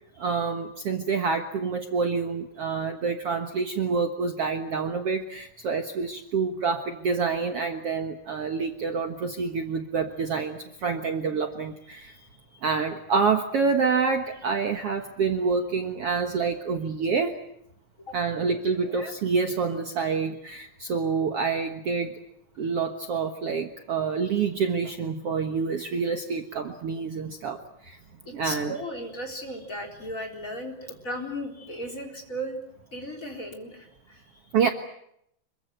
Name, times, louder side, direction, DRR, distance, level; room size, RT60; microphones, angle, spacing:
voice 1, 0.2-12.2 12.6-17.4 18.1-22.2 22.6-28.0 28.3-28.7 34.5-34.7, right 5 dB, 55° right, 5 dB, 2.1 m, -27 dB
voice 2, 18.1-18.4 18.7-19.1 28.2-32.6 32.9-34.4, equal, 25° left, 3 dB, 4.2 m, -36 dB
26.5 x 23.5 x 7.8 m, 0.74 s
omnidirectional pair, 3.8 m